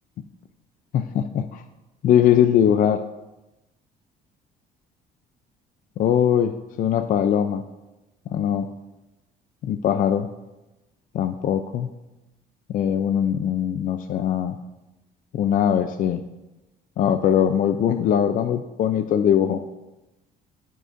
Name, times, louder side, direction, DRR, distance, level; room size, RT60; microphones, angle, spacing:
voice 1, 0.9-1.6 2.0-3.0 6.0-6.5 6.8-7.6 8.3-8.7 9.6-10.3 11.1-11.9 12.7-14.6 15.3-16.2 17.0-19.6, left 9 dB, 55° left, 9 dB, 0.4 m, -21 dB
14.5 x 5.0 x 2.5 m, 1.0 s
cardioid pair, 110°, 17 cm